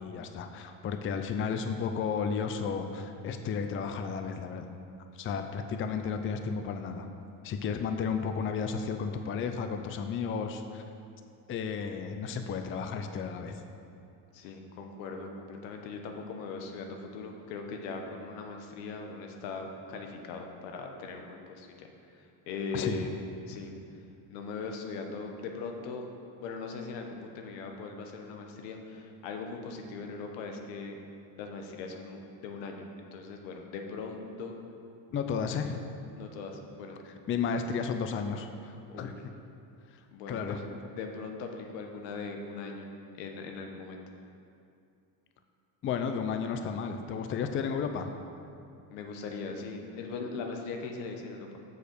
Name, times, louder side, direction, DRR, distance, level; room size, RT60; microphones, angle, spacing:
voice 1, 0.0-4.7 5.1-7.1 7.4-10.8 11.5-13.6 22.7-23.0 35.1-35.8 37.0-39.2 40.3-40.6 45.8-48.2, left 6 dB, 25° left, 6 dB, 0.4 m, -33 dB
voice 2, 14.3-21.9 22.5-23.1 23.5-23.7 24.3-26.1 26.4-31.0 31.4-34.6 36.2-37.0 38.9-39.1 40.1-40.6 40.9-42.9 43.1-44.0 48.9-51.5, left 4 dB, 90° left, 3 dB, 1.1 m, -40 dB
6.6 x 5.0 x 6.7 m, 2.5 s
supercardioid pair, 110°, 48 cm